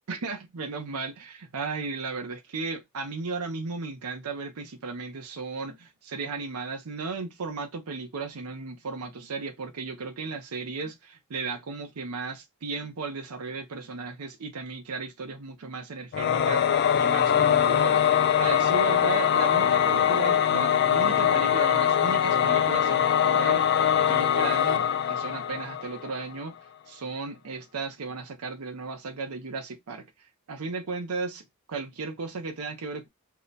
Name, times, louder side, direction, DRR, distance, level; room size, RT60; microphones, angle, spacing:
voice 1, 0.1-26.6 26.9-30.0 30.5-33.1, right 4 dB, 90° right, 0.6 m, -35 dB
Singing / Musical instrument, 16.1-26.2, left 9 dB, 50° left, 0.3 m, -22 dB
2.7 x 2.1 x 3.8 m
head